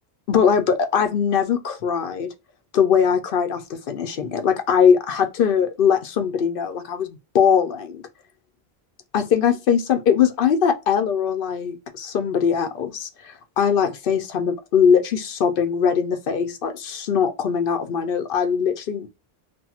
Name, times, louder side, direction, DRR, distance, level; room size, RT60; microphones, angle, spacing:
voice 1, 0.3-2.3 2.7-8.0 9.1-19.1, left 7 dB, 65° left, 0.7 m, -21 dB
2.8 x 2.5 x 2.4 m
omnidirectional pair, 1.0 m